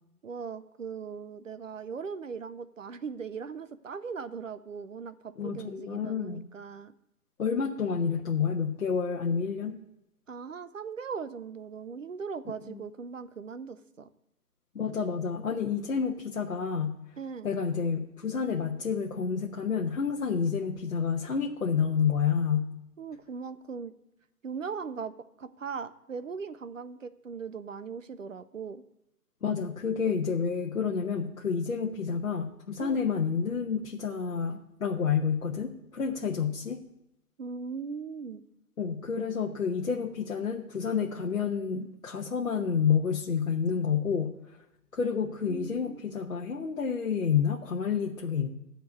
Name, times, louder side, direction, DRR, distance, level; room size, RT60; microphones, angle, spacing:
voice 1, 0.2-6.9 10.3-14.1 17.2-17.5 23.0-23.9 24.4-28.8 32.8-33.0 37.4-38.5 45.5-46.0, right 5 dB, 55° right, 12 dB, 0.8 m, -39 dB
voice 2, 5.4-6.4 7.4-9.8 12.7-12.8 14.7-16.9 17.4-22.7 29.4-36.8 38.8-44.3 44.9-48.5, left 6 dB, 60° left, -1 dB, 1.2 m, -29 dB
12.5 x 4.5 x 8.5 m, 0.88 s
hypercardioid pair, 165°, 46 cm